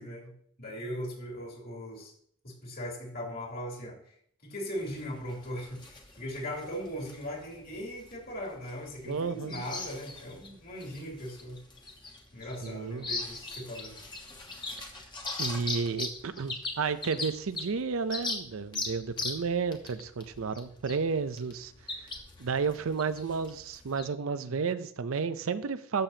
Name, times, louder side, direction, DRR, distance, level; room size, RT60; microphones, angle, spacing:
voice 1, 0.0-2.1 2.4-4.2 4.4-11.6 12.3-14.0, equal, 45° left, -2 dB, 2.9 m, -39 dB
sound 1, 4.8-24.1, left 3 dB, 20° left, 1.2 m, -40 dB
voice 2, 9.1-9.6 12.6-13.0 15.4-21.7 22.4-26.0, right 5 dB, 75° right, 13 dB, 0.5 m, -32 dB
13.0 x 6.9 x 2.8 m, 0.64 s
head